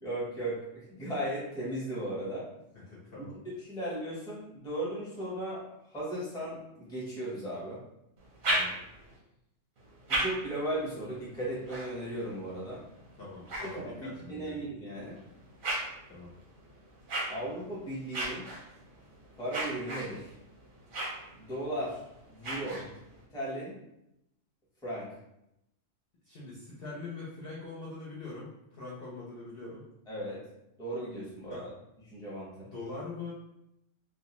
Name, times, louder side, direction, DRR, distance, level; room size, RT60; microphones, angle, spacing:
voice 1, 0.0-2.5 3.2-3.3 3.6-7.8 10.1-12.8 13.6-15.2 17.3-18.5 19.4-20.3 21.4-22.0 22.3-22.8 23.3-23.8 24.8-25.1 30.1-30.4 30.8-31.7 32.1-32.7, right 1 dB, 5° left, -7 dB, 0.7 m, -36 dB
voice 2, 2.7-3.4 8.5-8.8 13.2-14.6 16.1-16.3 22.7-23.0 26.3-28.5 28.8-29.8 31.5-31.7 32.6-33.3, left 3 dB, 55° left, -7 dB, 0.8 m, -43 dB
sound 1, 8.2-9.2 9.8-14.4 15.0-23.2, right 1 dB, 50° right, 0.7 m, -38 dB
2.3 x 2.2 x 2.9 m, 0.84 s
omnidirectional pair, 1.3 m